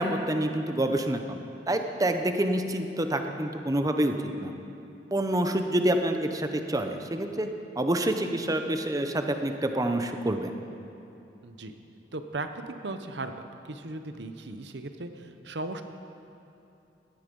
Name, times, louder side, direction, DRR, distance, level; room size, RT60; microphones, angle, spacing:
voice 1, 0.0-1.4 1.7-4.1 4.4-4.5 5.1-7.5 7.8-10.5, right 1 dB, 20° right, 6 dB, 0.9 m, -27 dB
voice 2, 11.4-11.7 12.1-15.8, right 2 dB, 80° right, 8 dB, 1.0 m, -37 dB
17.5 x 12.0 x 5.4 m, 2.9 s
head